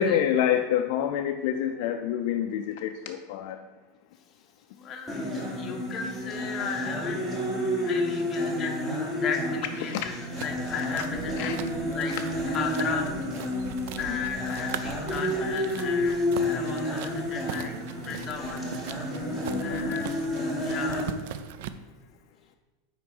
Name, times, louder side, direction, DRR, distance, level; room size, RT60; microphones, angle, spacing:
voice 1, 0.0-3.6 9.8-10.1 11.4-11.6 14.1-14.2 19.5-19.9, left 9 dB, 50° left, 5 dB, 0.4 m, -27 dB
voice 2, 4.7-5.3 5.6-7.3 7.8-8.9 9.1-11.5 11.9-12.1 12.5-13.1 14.0-17.7 18.0-18.7 19.6-20.1 20.6-21.0, left 6 dB, 20° left, 2 dB, 0.7 m, -35 dB
sound 1, 5.1-21.1, left 1 dB, 5° right, 1.1 m, -30 dB
sound 2, 10.4-21.7, right 9 dB, 55° right, 0.4 m, -41 dB
5.9 x 4.6 x 5.4 m, 1.2 s
supercardioid pair, 175°, 0 cm